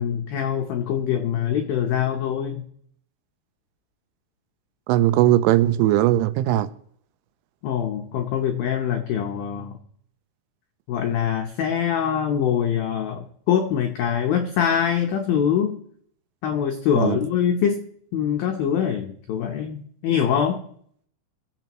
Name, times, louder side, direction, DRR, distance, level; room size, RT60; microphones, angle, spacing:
voice 1, 0.0-2.6 7.6-9.8 10.9-15.8 16.4-17.8 18.1-20.6, left 8 dB, 90° left, 2.0 m, -24 dB
voice 2, 4.9-6.7 17.0-17.2, right 14 dB, 85° right, 3.1 m, -19 dB
22.5 x 7.5 x 3.0 m
omnidirectional pair, 5.6 m